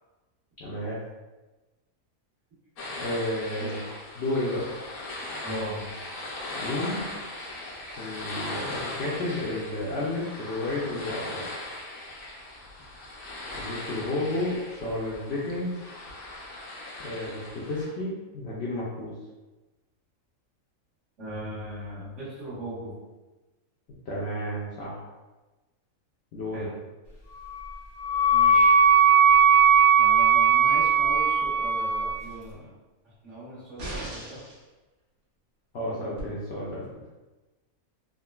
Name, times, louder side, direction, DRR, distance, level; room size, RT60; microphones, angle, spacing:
voice 1, 0.6-1.0 3.0-3.8 4.2-4.7 6.6-7.1 8.0-11.5 13.5-15.8 17.0-19.1 24.1-25.1 26.3-26.6 35.7-36.9, left 1 dB, 65° left, -6 dB, 0.7 m, -31 dB
sound 1, 2.8-17.9, left 2 dB, 85° left, 1.1 m, -39 dB
voice 2, 5.4-5.9 21.2-23.0 26.5-26.7 28.3-28.7 30.0-32.7 33.2-34.4, right 1 dB, 60° right, -9 dB, 1.4 m, -38 dB
Wind instrument woodwind instrument, 27.4-32.2, right 5 dB, 35° right, 0.6 m, -19 dB
sound 2, 33.8-34.6 36.2-36.3, right 1 dB, 85° right, 1.3 m, -37 dB
3.6 x 2.1 x 2.2 m, 1.2 s
omnidirectional pair, 1.5 m